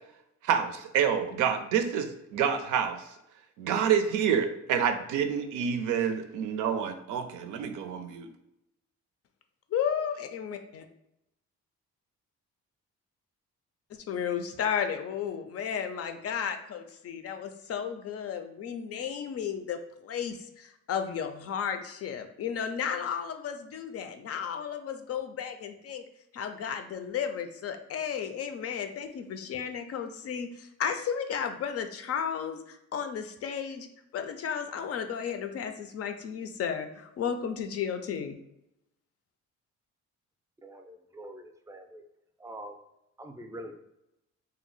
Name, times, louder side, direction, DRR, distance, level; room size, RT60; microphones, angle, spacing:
voice 1, 0.4-3.0 3.6-8.3, right 7 dB, 85° right, 7 dB, 0.5 m, -28 dB
voice 2, 9.7-10.8 14.1-26.0 26.3-33.9 34.1-38.4, left 7 dB, 55° left, 7 dB, 0.4 m, -33 dB
voice 3, 40.6-42.0 42.4-42.8 43.2-43.7, right 1 dB, 10° right, 5 dB, 0.4 m, -44 dB
2.7 x 2.0 x 3.9 m, 0.85 s
cardioid pair, 90°, 30 cm